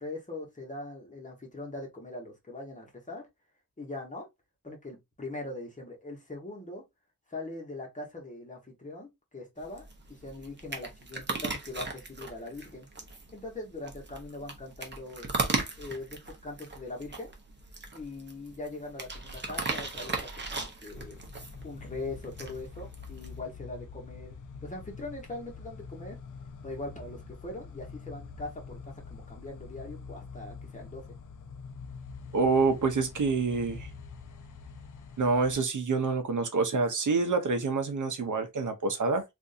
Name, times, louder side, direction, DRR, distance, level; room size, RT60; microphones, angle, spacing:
voice 1, 0.0-3.3 3.8-4.3 4.6-6.8 7.3-12.9 13.3-15.3 15.8-17.3 17.9-21.2 21.6-24.4 24.6-26.2 26.6-31.0, left 2 dB, 25° left, 1.2 m, -41 dB
sound 1, 9.6-23.4, right 3 dB, 35° right, 0.8 m, -37 dB
sound 2, 20.9-35.6, left 5 dB, 65° left, 0.6 m, -45 dB
voice 2, 32.3-33.9 35.2-39.2, right 4 dB, 65° right, 0.7 m, -27 dB
3.5 x 2.6 x 2.6 m
wide cardioid pair, 140°, 33 cm